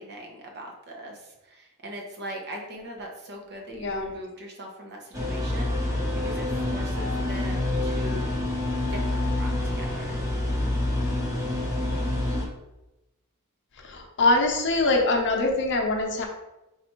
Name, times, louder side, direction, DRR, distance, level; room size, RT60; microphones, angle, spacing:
voice 1, 0.0-8.3 8.9-10.2, equal, 50° right, 1 dB, 0.8 m, -41 dB
voice 2, 3.7-4.1 13.8-16.3, left 2 dB, 55° left, 2 dB, 0.7 m, -23 dB
sound 1, 5.1-12.5, left 1 dB, 15° right, 1.0 m, -27 dB
4.0 x 2.5 x 4.5 m, 0.96 s
head